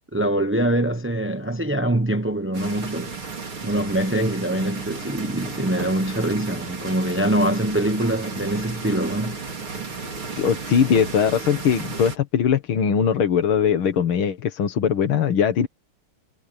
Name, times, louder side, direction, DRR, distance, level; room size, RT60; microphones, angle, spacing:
voice 1, 0.1-3.1 3.6-9.4, right 1 dB, 15° right, 0.4 m, -24 dB
sound 1, 2.5-12.2, right 4 dB, 80° right, 4.8 m, -34 dB
voice 2, 10.4-15.7, left 7 dB, 80° left, 2.3 m, -20 dB
omnidirectional pair, 2.3 m